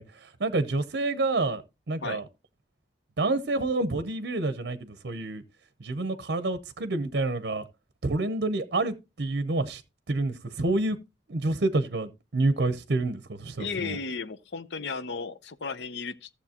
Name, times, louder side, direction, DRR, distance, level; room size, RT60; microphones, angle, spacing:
voice 1, 0.0-1.6 1.9-2.2 3.2-5.4 5.8-7.6 8.0-9.8 10.1-11.0 11.3-14.0, right 2 dB, 65° right, 0.8 m, -28 dB
voice 2, 13.6-16.3, left 5 dB, 70° left, 0.7 m, -34 dB
14.5 x 7.1 x 2.8 m
head